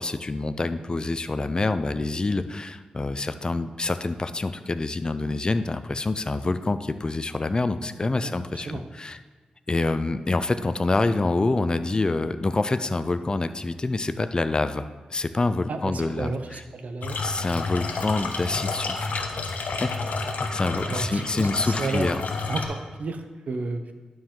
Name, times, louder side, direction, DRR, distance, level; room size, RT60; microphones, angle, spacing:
voice 1, 0.0-9.2 9.7-16.6 17.2-19.2 19.8-20.0 20.5-22.2, left 2 dB, 30° left, 11 dB, 0.5 m, -26 dB
voice 2, 8.2-8.8 15.7-17.2 20.6-22.1 22.5-23.9, right 3 dB, 65° right, 7 dB, 0.7 m, -32 dB
sound 1, 17.0-22.7, left 3 dB, 75° left, 0.8 m, -30 dB
11.5 x 4.7 x 3.8 m, 1.4 s
cardioid pair, 65°, 3 cm